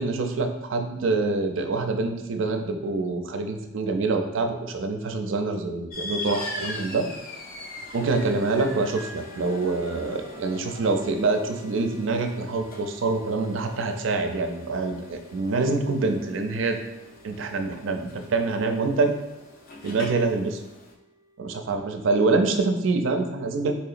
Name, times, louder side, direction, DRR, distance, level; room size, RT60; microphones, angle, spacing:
voice 1, 0.0-7.1 7.9-16.8 17.2-19.1 19.8-20.6 21.4-23.7, right 3 dB, 90° right, 5 dB, 0.4 m, -25 dB
sound 1, 5.9-20.9, left 2 dB, 50° left, 0.5 m, -42 dB
sound 2, 8.6-22.5, right 1 dB, 70° left, 1.1 m, -50 dB
4.2 x 2.8 x 2.4 m, 1.0 s
head